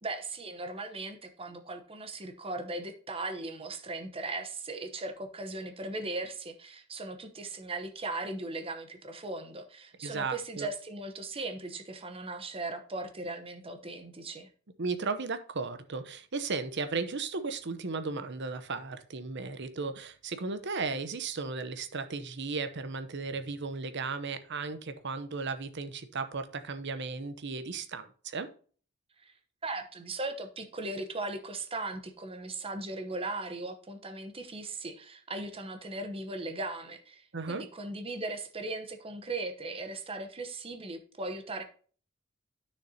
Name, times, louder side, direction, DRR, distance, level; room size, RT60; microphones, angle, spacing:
voice 1, 0.0-14.5 29.2-29.3 29.6-41.6, right 2 dB, 25° right, 0.9 m, -38 dB
voice 2, 10.0-10.7 14.8-28.5 37.3-37.7, right 4 dB, 55° right, 0.8 m, -35 dB
9.6 x 6.6 x 2.8 m
head